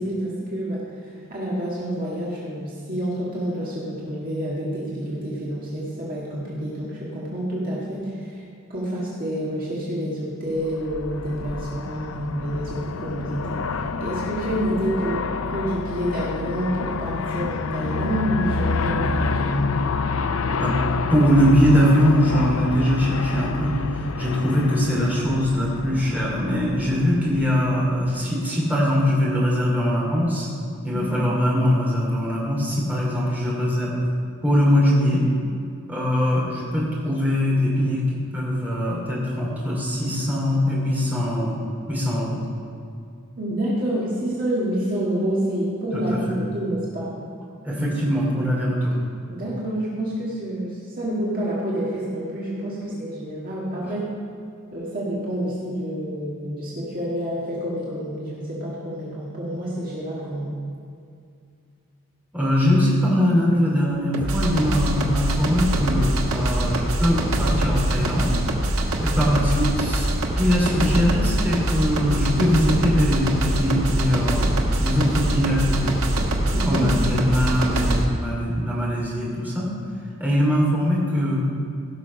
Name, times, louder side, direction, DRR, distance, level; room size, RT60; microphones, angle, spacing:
voice 1, 0.0-8.4 8.7-13.6 14.0-19.7 30.9-31.2 43.4-47.1 49.3-54.1 54.7-60.6 76.5-76.9, right 1 dB, 40° right, -6 dB, 1.8 m, -28 dB
Aircraft, 10.7-27.9, left 4 dB, 65° left, 0.5 m, -28 dB
voice 2, 21.1-30.5 30.8-34.0 34.4-35.3 35.9-41.6 41.9-42.4 45.9-46.0 47.6-48.9 62.3-68.4 69.0-70.1 70.4-75.9 76.4-79.7 80.2-81.5, equal, 10° right, -6 dB, 2.9 m, -21 dB
sound 1, 64.1-78.0, right 1 dB, 80° right, 1.2 m, -23 dB
16.5 x 6.2 x 5.5 m, 2.4 s
head